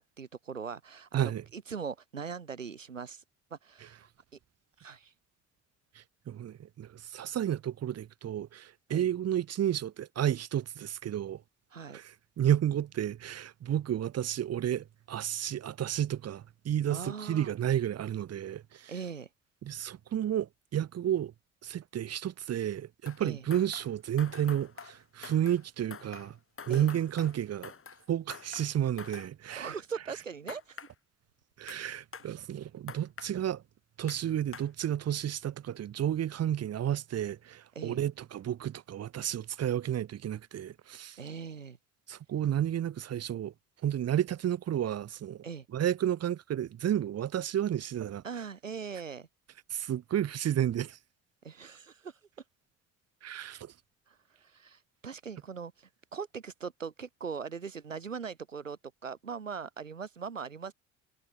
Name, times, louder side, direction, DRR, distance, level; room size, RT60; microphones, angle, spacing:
voice 1, 0.0-3.2 3.5-4.1 4.8-5.1 8.9-9.1 11.7-12.0 16.9-17.5 18.9-19.3 23.2-23.4 26.7-26.9 29.5-30.9 32.2-32.3 37.8-38.0 41.2-41.8 45.4-45.7 48.2-49.3 51.4-52.2 54.1-60.7, right 6 dB, 90° right, 3.6 m, -41 dB
voice 2, 1.1-1.4 5.9-11.4 11.9-18.9 19.6-21.3 21.6-26.4 26.7-27.7 28.1-29.7 31.6-33.6 34.0-41.2 42.1-43.5 43.8-45.4 45.7-48.2 49.7-51.0 53.2-53.7, right 10 dB, 40° right, 1.3 m, -31 dB
sound 1, 23.0-23.3 23.5-25.7 25.9-28.1 28.3-29.3 30.5-30.9 31.7-31.8 32.1-32.3 32.9-33.3 34.1-34.2 34.5-34.7, left 6 dB, 35° left, 5.0 m, -46 dB
figure-of-eight pair, 50°, 38 cm